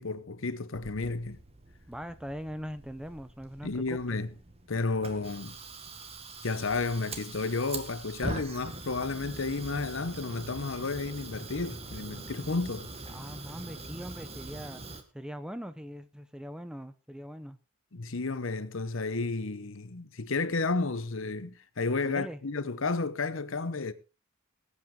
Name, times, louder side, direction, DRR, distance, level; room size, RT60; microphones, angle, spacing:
voice 1, 0.0-1.4 3.6-4.3 4.7-5.6 6.4-12.9 17.9-23.9, left 3 dB, 65° left, 0.9 m, -32 dB
Fire, 0.7-15.0, right 2 dB, 30° right, 1.6 m, -43 dB
voice 2, 1.9-4.2 13.1-14.8 15.1-17.6 22.0-22.4, equal, 5° right, 0.6 m, -41 dB
19.5 x 8.6 x 3.7 m
head